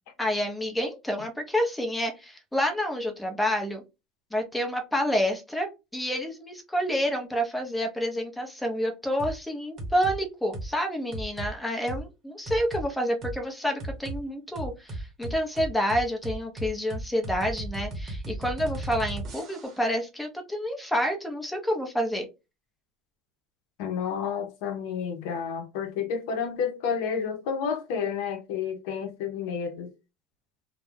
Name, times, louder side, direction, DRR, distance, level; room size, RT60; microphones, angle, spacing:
voice 1, 0.2-3.8 4.3-22.3, equal, 5° left, 0.6 m, -28 dB
sound 1, 9.2-9.4 9.8-10.2 10.5-10.7 11.1-11.5 11.9-12.0 12.5-12.9 13.2-13.4 13.8-14.2 14.6-19.9, right 1 dB, 40° right, 0.8 m, -35 dB
voice 2, 23.8-29.9, left 6 dB, 75° left, 0.6 m, -30 dB
2.2 x 2.0 x 3.2 m
supercardioid pair, 120°, 0 cm